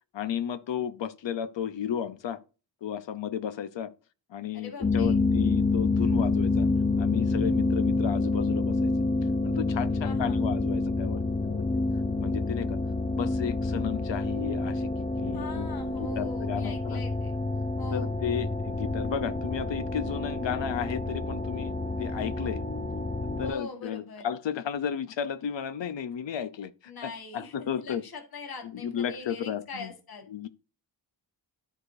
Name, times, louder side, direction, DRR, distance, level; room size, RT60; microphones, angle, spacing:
voice 1, 0.1-2.4 2.8-3.9 4.3-6.7 7.0-8.9 9.4-11.7 12.2-12.8 13.1-15.7 16.0-17.0 17.9-21.7 22.0-22.6 23.4-26.7 27.0-28.0 28.6-29.9 30.3-30.5, left 8 dB, 70° left, 0.8 m, -33 dB
voice 2, 4.5-5.1 10.0-10.4 15.3-17.3 17.8-18.1 23.4-24.3 26.9-30.2, left 3 dB, 50° left, 1.7 m, -42 dB
sound 1, 4.8-23.5, left 3 dB, 20° left, 0.5 m, -28 dB
13.0 x 4.9 x 2.7 m
wide cardioid pair, 160°, 46 cm